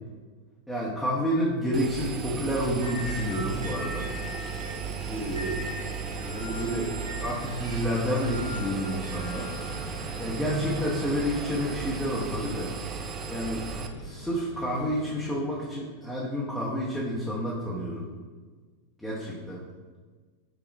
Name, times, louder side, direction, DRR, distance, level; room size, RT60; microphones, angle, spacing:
voice 1, 0.7-4.1 5.1-5.6 6.2-6.9 7.2-9.5 10.2-12.7 13.3-13.6 14.0-18.0 19.0-19.6, equal, ahead, -7 dB, 0.8 m, -29 dB
Engine, 1.7-13.9, right 6 dB, 30° right, 0.4 m, -36 dB
sound 1, 2.8-12.1, equal, 70° right, 0.7 m, -39 dB
sound 2, 5.0-15.3, equal, 65° left, 1.1 m, -45 dB
5.2 x 2.3 x 4.1 m, 1.4 s
figure-of-eight pair, 90°, 0 cm